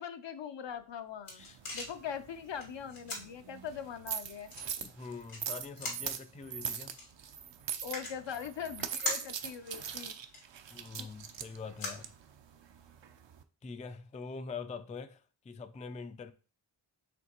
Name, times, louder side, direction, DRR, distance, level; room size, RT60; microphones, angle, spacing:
voice 1, 0.0-1.4 1.7-4.5 7.8-10.2 11.0-11.1, left 8 dB, 60° left, 0.6 m, -41 dB
sound 1, 0.7-12.8, left 2 dB, 90° left, 1.7 m, -45 dB
sound 2, 1.4-13.4, right 8 dB, 60° right, 0.6 m, -42 dB
voice 2, 4.8-7.0 10.7-12.1 13.6-16.3, left 4 dB, 15° left, 0.3 m, -44 dB
5.1 x 3.2 x 2.9 m
cardioid pair, 50°, 50 cm